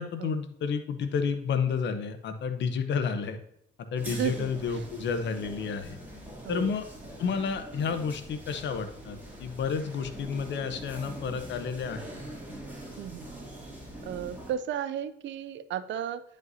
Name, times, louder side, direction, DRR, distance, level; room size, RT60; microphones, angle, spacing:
voice 1, 0.0-3.4 3.8-6.0 6.5-6.9 7.2-12.0, left 6 dB, 65° left, 9 dB, 0.8 m, -31 dB
sound 1, 3.9-14.5, right 1 dB, 10° right, 2.8 m, -43 dB
voice 2, 4.1-4.8 6.4-6.7 13.0-13.3 14.1-16.2, right 9 dB, 65° right, 13 dB, 0.5 m, -34 dB
9.2 x 5.2 x 2.7 m, 0.74 s
cardioid pair, 90°, 20 cm